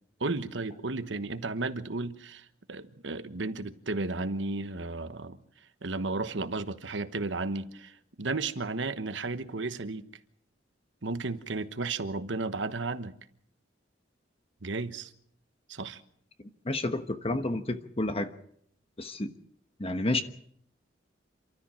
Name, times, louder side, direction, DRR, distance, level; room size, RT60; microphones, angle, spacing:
voice 1, 0.2-5.4 5.8-10.1 11.0-13.1 14.6-15.1 15.7-16.0, right 3 dB, 70° right, 1.2 m, -33 dB
voice 2, 16.6-18.3 19.0-19.3 19.8-20.2, left 2 dB, 30° left, 1.1 m, -30 dB
28.0 x 13.5 x 7.6 m
head